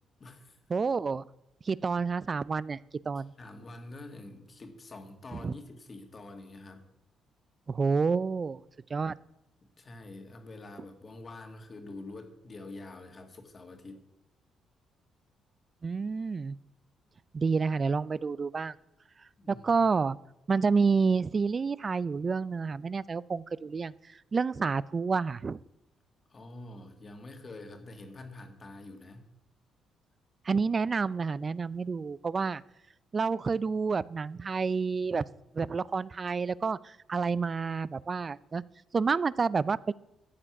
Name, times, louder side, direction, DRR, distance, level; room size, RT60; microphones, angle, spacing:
voice 1, 0.2-0.6 3.2-6.9 9.8-14.0 19.4-19.8 26.3-29.3, left 2 dB, 35° left, 5 dB, 1.8 m, -46 dB
voice 2, 0.7-1.2 1.6-2.8 3.1-3.3 5.4-5.5 7.7-8.6 8.9-9.1 15.8-16.6 17.3-18.7 19.5-20.2 20.5-23.9 24.3-25.6 30.5-32.6 33.1-35.2 35.5-38.6 38.9-39.9, right 5 dB, 35° right, 20 dB, 0.4 m, -29 dB
12.5 x 7.6 x 5.9 m, 0.87 s
cardioid pair, 90°, 0 cm